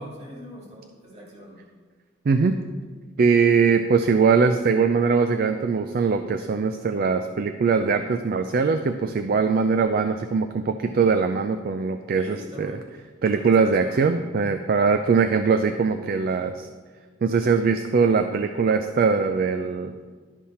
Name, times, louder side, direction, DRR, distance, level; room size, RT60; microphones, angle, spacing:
voice 1, 0.0-1.6 12.2-12.8 13.3-14.0, equal, 35° right, -3 dB, 2.1 m, -42 dB
voice 2, 2.3-2.6 3.2-12.8 13.2-16.7 17.2-19.9, right 5 dB, 50° right, 8 dB, 0.4 m, -21 dB
11.5 x 5.6 x 4.3 m, 1.5 s
head